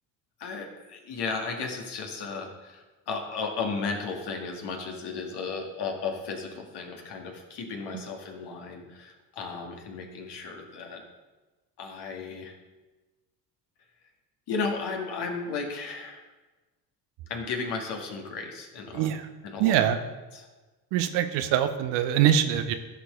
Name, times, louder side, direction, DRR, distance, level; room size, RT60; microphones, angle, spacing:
voice 1, 0.4-11.0 11.8-12.6 14.5-16.2 17.3-19.1 19.4-19.8 20.3-20.5, left 4 dB, 50° left, 2 dB, 2.0 m, -34 dB
voice 2, 18.9-19.3 19.6-20.0 20.9-22.7, right 10 dB, 60° right, 9 dB, 1.0 m, -23 dB
15.0 x 6.6 x 3.8 m, 1.2 s
figure-of-eight pair, 50°, 50 cm